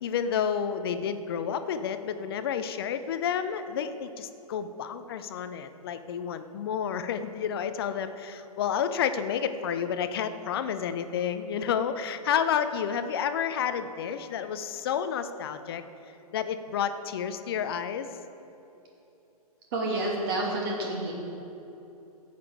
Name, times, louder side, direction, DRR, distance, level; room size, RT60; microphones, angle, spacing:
voice 1, 0.0-15.8 16.3-18.1, left 8 dB, 40° left, 11 dB, 0.6 m, -30 dB
voice 2, 19.7-21.1, right 2 dB, 35° right, -2 dB, 2.7 m, -29 dB
14.5 x 8.5 x 4.7 m, 3.0 s
figure-of-eight pair, 120°, 20 cm